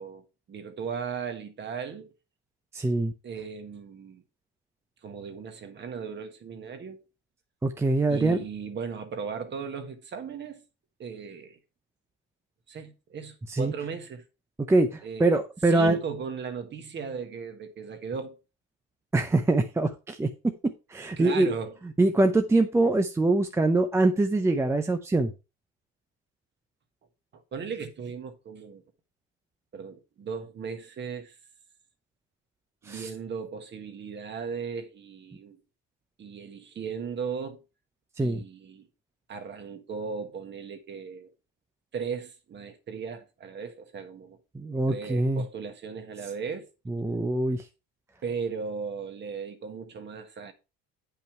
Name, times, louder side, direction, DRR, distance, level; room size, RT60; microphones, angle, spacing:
voice 1, 0.0-2.1 3.2-4.2 5.0-7.0 8.1-10.6 11.0-11.6 12.7-14.2 15.0-18.4 21.2-21.8 27.3-28.8 29.7-31.4 32.8-35.6 36.2-37.6 38.2-38.9 39.3-41.3 41.9-44.4 44.7-46.7 48.2-50.5, right 6 dB, 35° right, 1.6 m, -37 dB
voice 2, 2.7-3.1 7.6-8.4 13.5-13.7 14.6-16.0 19.1-21.5 22.0-25.3 32.8-33.1 38.2-38.4 44.5-45.4 46.9-47.7, right 2 dB, 10° right, 0.6 m, -24 dB
9.1 x 5.7 x 4.5 m
cardioid pair, 145°, 32 cm